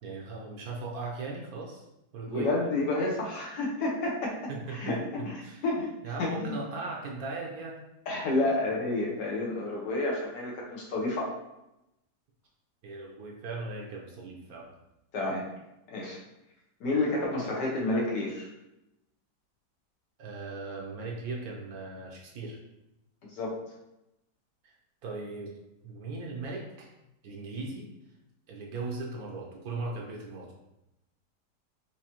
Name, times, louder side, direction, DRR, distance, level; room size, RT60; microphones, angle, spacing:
voice 1, 0.0-1.9 2.1-2.5 4.5-5.7 6.0-7.9 12.8-14.7 20.2-22.6 24.6-24.7 25.0-25.5 25.8-26.9 27.2-27.9 28.5-30.5, right 3 dB, 65° right, -2 dB, 1.1 m, -38 dB
voice 2, 2.3-4.3 4.8-6.6 8.1-11.4 15.1-15.4 15.9-16.2 16.8-18.5 23.2-23.5, left 2 dB, 80° left, -3 dB, 1.5 m, -30 dB
4.8 x 2.7 x 2.9 m, 0.90 s
omnidirectional pair, 1.8 m